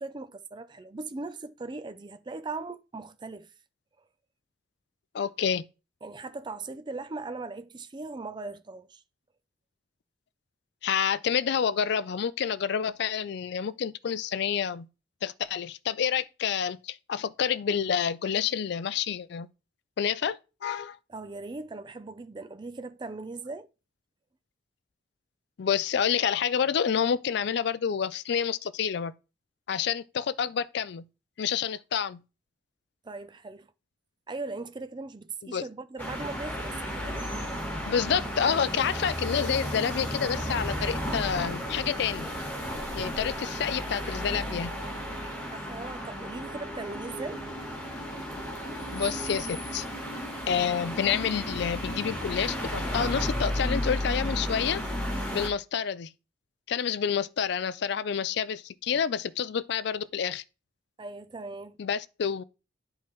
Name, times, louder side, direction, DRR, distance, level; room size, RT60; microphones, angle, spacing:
voice 1, 0.0-3.5 6.0-9.0 21.1-23.7 33.0-33.7 34.3-37.3 43.2-43.3 45.5-47.4 61.0-61.8, right 3 dB, 25° right, 0.5 m, -39 dB
voice 2, 5.1-5.6 10.8-14.9 15.2-19.5 20.0-21.0 25.6-29.1 29.7-31.0 31.4-32.2 35.5-35.6 37.8-42.3 42.9-44.7 48.9-49.9 50.5-54.8 55.3-56.1 56.7-60.4 61.8-62.4, left 7 dB, 60° left, 0.4 m, -28 dB
sound 1, 36.0-55.5, equal, 10° left, 2.0 m, -33 dB
Wind instrument woodwind instrument, 43.6-50.4, right 4 dB, 85° right, 1.5 m, -52 dB
10.5 x 4.3 x 3.1 m
head